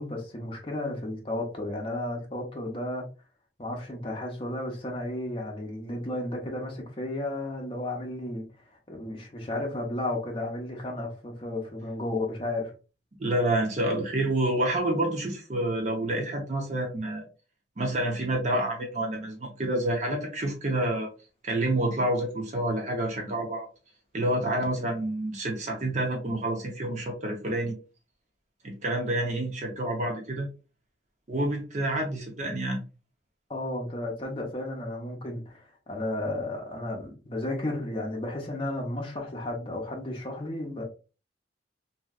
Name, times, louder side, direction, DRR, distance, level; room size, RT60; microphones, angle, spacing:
voice 1, 0.0-3.0 3.6-8.4 8.9-12.7 31.9-32.0 33.5-40.8, left 1 dB, 30° left, 0.7 m, -33 dB
voice 2, 13.2-17.2 17.8-21.1 21.4-23.7 24.1-27.8 28.6-30.5 31.3-32.8, right 1 dB, 40° right, 0.6 m, -28 dB
3.0 x 2.7 x 2.3 m
head